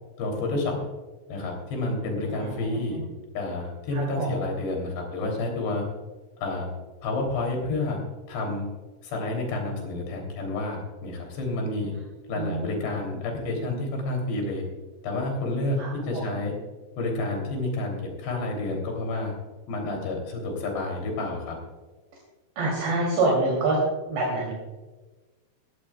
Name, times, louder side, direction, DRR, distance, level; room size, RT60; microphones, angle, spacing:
voice 1, 0.2-0.8 1.3-3.0 3.3-5.8 6.4-6.7 7.0-8.0 8.3-8.7 9.0-11.9 12.3-14.6 15.0-16.5 17.0-19.3 19.7-21.6, left 2 dB, 60° left, 1 dB, 5.1 m, -29 dB
voice 2, 2.3-3.0 3.9-4.3 12.2-12.8 15.8-16.4 22.6-23.8 24.1-24.5, right 2 dB, 60° right, -4 dB, 5.1 m, -27 dB
18.5 x 16.5 x 2.4 m, 1.2 s
omnidirectional pair, 5.8 m